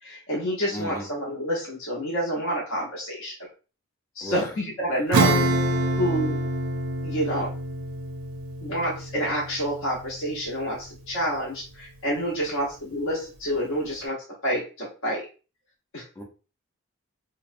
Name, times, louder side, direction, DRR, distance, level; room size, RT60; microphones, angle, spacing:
voice 1, 0.0-3.3 4.2-5.4 6.0-6.4 7.0-7.5 8.6-14.2 14.4-15.2 15.9-16.0, equal, 65° left, -3 dB, 0.7 m, -28 dB
voice 2, 0.7-1.1 4.2-4.5 4.9-5.0 16.2-16.3, left 1 dB, 15° left, 0 dB, 0.5 m, -34 dB
Acoustic guitar / Strum, 5.1-11.1, right 2 dB, 75° right, 0.5 m, -27 dB
2.8 x 2.0 x 2.5 m, 0.34 s
head